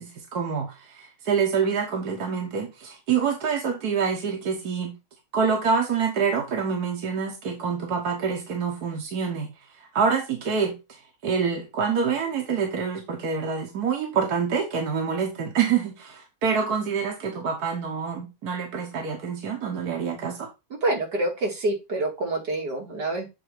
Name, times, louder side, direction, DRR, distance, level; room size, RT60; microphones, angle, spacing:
voice 1, 0.0-5.0 5.3-20.5, right 6 dB, 70° right, 1.7 m, -26 dB
voice 2, 20.8-23.3, right 2 dB, 90° right, 2.9 m, -27 dB
7.7 x 4.0 x 4.8 m
omnidirectional pair, 1.7 m